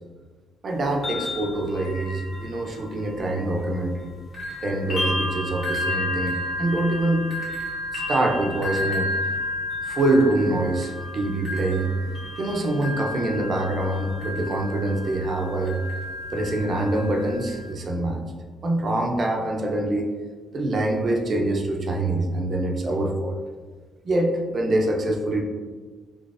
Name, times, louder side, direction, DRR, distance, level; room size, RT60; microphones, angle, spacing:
voice 1, 0.6-4.1 4.6-7.2 7.9-9.1 9.9-11.9 12.4-15.8 16.3-18.2 18.6-20.1 20.5-23.3 24.0-25.4, right 2 dB, 45° right, 1 dB, 0.5 m, -25 dB
sound 1, 0.7-4.0 4.3-17.7, left 1 dB, 50° left, 1.3 m, -32 dB
3.9 x 3.0 x 2.4 m, 1.5 s
cardioid pair, 90°, 0 cm